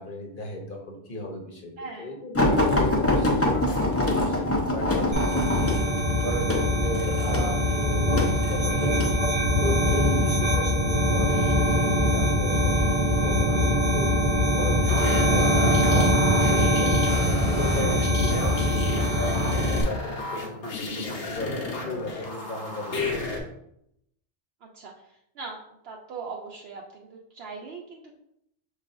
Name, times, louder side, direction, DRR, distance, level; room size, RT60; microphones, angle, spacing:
voice 1, 0.0-9.2 9.6-23.2, left 1 dB, 50° left, 1 dB, 1.0 m, -36 dB
voice 2, 1.8-2.2 24.6-24.9 25.4-28.2, right 4 dB, 70° right, -1 dB, 0.8 m, -40 dB
sound 1, 2.3-9.2 9.9-10.4 11.3-12.0 12.7-12.9 13.3-13.4, left 1 dB, 15° left, 0.5 m, -24 dB
sound 2, 5.1-19.8, equal, 35° right, 0.8 m, -23 dB
sound 3, 14.9-23.4, left 2 dB, 90° left, 1.2 m, -32 dB
6.4 x 3.2 x 2.6 m, 0.78 s
omnidirectional pair, 1.2 m